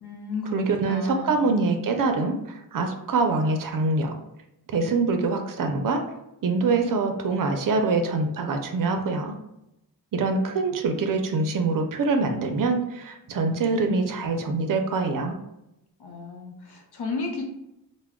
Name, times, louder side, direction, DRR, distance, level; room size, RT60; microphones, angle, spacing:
voice 1, 0.0-1.5 16.0-17.4, left 3 dB, 85° left, 1 dB, 0.7 m, -33 dB
voice 2, 0.5-4.2 4.7-6.0 6.4-9.3 10.1-15.4, right 3 dB, 60° right, 5 dB, 0.5 m, -24 dB
2.2 x 2.1 x 3.4 m, 0.87 s
wide cardioid pair, 85°, 38 cm